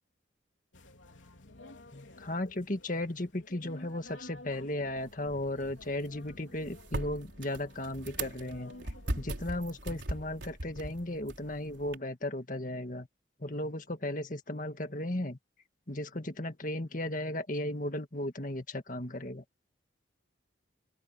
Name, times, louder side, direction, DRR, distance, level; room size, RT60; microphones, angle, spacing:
sound 1, 0.7-9.8, left 1 dB, 90° left, 3.6 m, -53 dB
voice 1, 1.9-8.7 9.2-13.1 13.4-15.4 15.9-19.4, left 1 dB, 45° left, 1.9 m, -35 dB
sound 2, 5.0-12.0, right 1 dB, 75° right, 4.2 m, -40 dB
open air
head